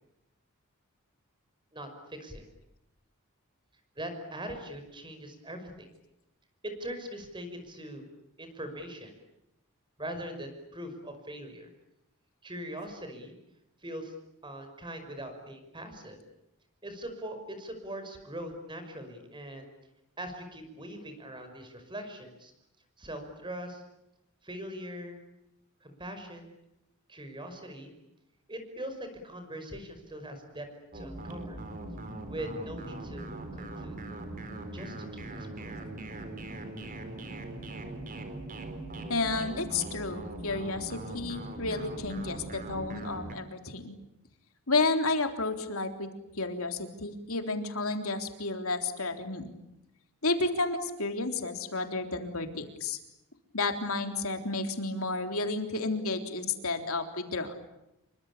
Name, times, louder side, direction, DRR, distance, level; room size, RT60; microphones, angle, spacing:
voice 1, 1.7-2.4 4.0-5.9 6.6-8.0 8.4-9.1 10.0-11.7 12.4-13.4 13.8-14.1 14.4-16.2 16.8-19.7 20.2-22.5 23.0-23.8 24.4-25.2 25.8-26.5 27.1-27.9 28.5-30.7 30.9-31.6 32.3-33.2 33.5-34.0 34.7-35.9, right 1 dB, 20° right, 7 dB, 5.6 m, -41 dB
sound 1, 30.9-43.4, right 2 dB, 40° right, 4.1 m, -40 dB
voice 2, 39.1-43.9 44.7-46.1 46.4-49.5 50.2-53.0 53.5-57.6, left 3 dB, 70° left, 6 dB, 3.7 m, -31 dB
28.5 x 24.5 x 8.6 m, 0.86 s
head